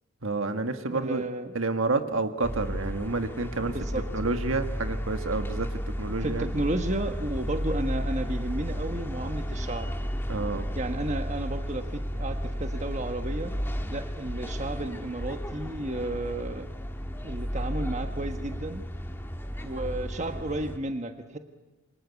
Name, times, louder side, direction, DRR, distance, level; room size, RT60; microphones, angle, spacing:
voice 1, 0.2-1.3 1.5-3.8 4.1-6.5 10.3-10.6, right 3 dB, 70° right, 7 dB, 1.7 m, -29 dB
voice 2, 0.9-1.5 3.6-4.1 6.2-9.9 10.7-13.5 13.9-16.7 17.2-18.8 19.6-21.4, right 2 dB, 30° right, 6 dB, 1.4 m, -33 dB
sound 1, 2.4-20.8, equal, 10° left, 1.6 m, -33 dB
28.0 x 24.0 x 8.3 m, 1.2 s
head